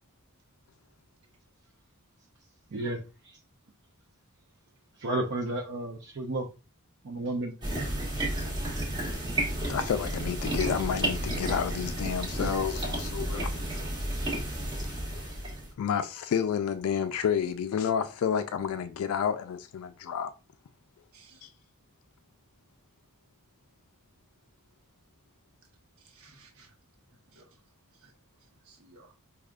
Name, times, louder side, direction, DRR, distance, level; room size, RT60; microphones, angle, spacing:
voice 1, 5.0-6.5 7.0-7.5, right 2 dB, 55° right, 0.6 m, -31 dB
Water Filter, 7.6-15.7, right 1 dB, 20° right, 1.0 m, -32 dB
voice 2, 9.7-13.6 14.9-15.1 15.8-20.3 21.4-21.5, left 7 dB, 75° left, 0.3 m, -30 dB
voice 3, 21.1-21.5 26.0-26.7 27.1-29.1, right 3 dB, 70° right, 1.0 m, -59 dB
4.8 x 2.3 x 2.3 m
head